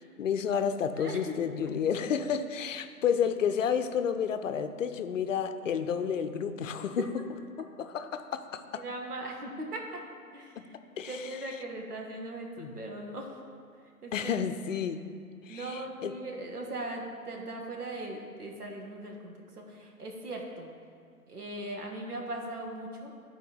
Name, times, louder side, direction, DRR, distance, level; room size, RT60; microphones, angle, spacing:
voice 1, 0.2-7.1 7.6-8.8 10.6-10.7 11.0-11.2 12.6-12.7 14.1-15.1 15.4-16.1, left 7 dB, 55° left, 9 dB, 0.6 m, -31 dB
voice 2, 1.0-1.4 8.0-8.1 8.7-10.0 10.3-13.4 14.0-14.3 15.5-20.7 21.3-23.1, right 1 dB, 80° right, 1 dB, 1.7 m, -39 dB
12.5 x 4.4 x 4.0 m, 2.2 s
hypercardioid pair, 145°, 46 cm